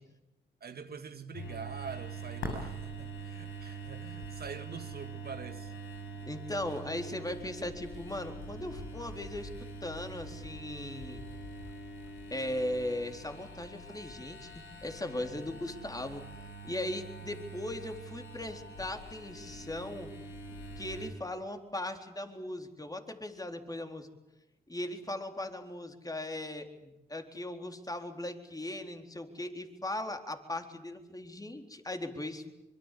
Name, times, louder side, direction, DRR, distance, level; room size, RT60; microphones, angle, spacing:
voice 1, 0.6-5.7, right 5 dB, 55° right, 1.9 m, -45 dB
sound 1, 1.3-21.1, right 2 dB, 85° left, 6.5 m, -44 dB
voice 2, 6.3-9.5 9.8-11.2 12.3-16.3 16.6-20.1 20.8-24.1 24.7-32.4, left 1 dB, 20° left, 4.0 m, -38 dB
25.0 x 23.0 x 8.5 m
supercardioid pair, 50°, 19 cm